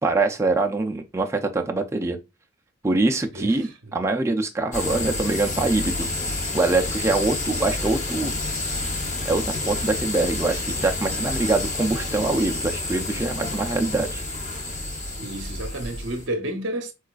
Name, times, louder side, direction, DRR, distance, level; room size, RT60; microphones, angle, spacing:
voice 1, 0.0-2.2 2.8-6.1 6.5-8.3 9.2-14.2, right 3 dB, 15° right, 0.3 m, -24 dB
sound 1, 4.7-16.3, left 2 dB, 35° left, 0.8 m, -29 dB
voice 2, 15.2-16.9, right 1 dB, 65° right, 0.6 m, -30 dB
4.6 x 2.3 x 2.3 m
head